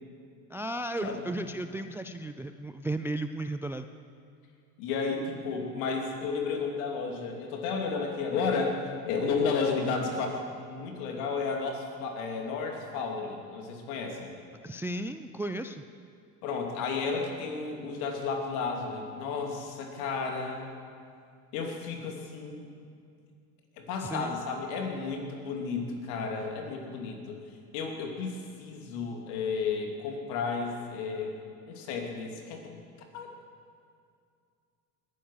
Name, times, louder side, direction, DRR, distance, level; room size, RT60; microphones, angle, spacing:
voice 1, 0.5-3.9 14.6-15.8 24.0-24.4, right 1 dB, 5° right, 9 dB, 0.3 m, -34 dB
voice 2, 1.0-1.3 4.8-14.3 16.4-20.7 21.5-22.7 23.8-27.4 27.7-31.3 31.7-32.8 33.1-33.3, left 4 dB, 70° left, 2 dB, 2.9 m, -32 dB
20.0 x 9.8 x 6.5 m, 2.4 s
hypercardioid pair, 80°, 45 cm